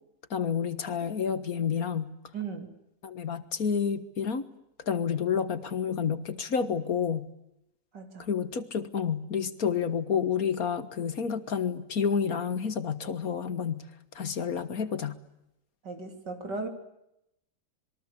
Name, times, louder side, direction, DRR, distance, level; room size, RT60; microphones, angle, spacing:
voice 1, 0.3-2.1 3.0-4.5 4.9-7.3 8.3-13.8 14.2-15.2, left 7 dB, 60° left, 12 dB, 1.9 m, -29 dB
voice 2, 2.3-2.7 7.9-8.3 15.8-16.7, right 4 dB, 85° right, 6 dB, 4.0 m, -36 dB
26.5 x 22.5 x 8.4 m, 0.83 s
omnidirectional pair, 1.8 m